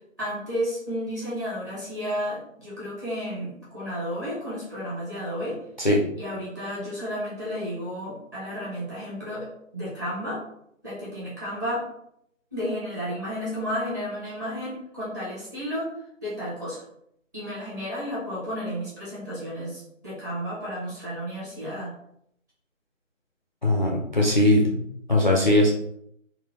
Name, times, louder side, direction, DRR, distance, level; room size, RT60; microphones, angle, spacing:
voice 1, 0.2-5.6 6.2-9.5 9.7-10.4 10.8-11.8 12.5-15.9 16.2-16.8 17.3-21.9, equal, 15° right, -9 dB, 0.8 m, -32 dB
voice 2, 23.6-24.8 25.1-25.7, left 1 dB, 35° left, -2 dB, 0.4 m, -20 dB
3.6 x 2.1 x 3.2 m, 0.73 s
figure-of-eight pair, 150°, 40 cm